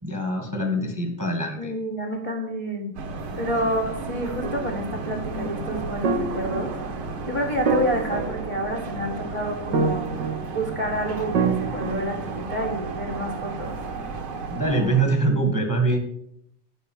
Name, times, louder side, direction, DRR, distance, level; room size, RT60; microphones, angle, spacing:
voice 1, 0.0-1.7 14.5-16.0, right 2 dB, 10° right, 2 dB, 1.1 m, -23 dB
voice 2, 1.6-2.9 3.3-6.7 7.2-10.1 10.5-13.7, equal, 25° left, -1 dB, 0.6 m, -29 dB
sound 1, 2.9-15.1, right 3 dB, 55° right, 1.6 m, -33 dB
sound 2, 4.4-5.0 6.0-7.1 7.7-9.1 9.7-10.8 11.3-12.4, right 5 dB, 90° right, 0.9 m, -27 dB
12.0 x 5.6 x 7.6 m, 0.74 s
omnidirectional pair, 3.7 m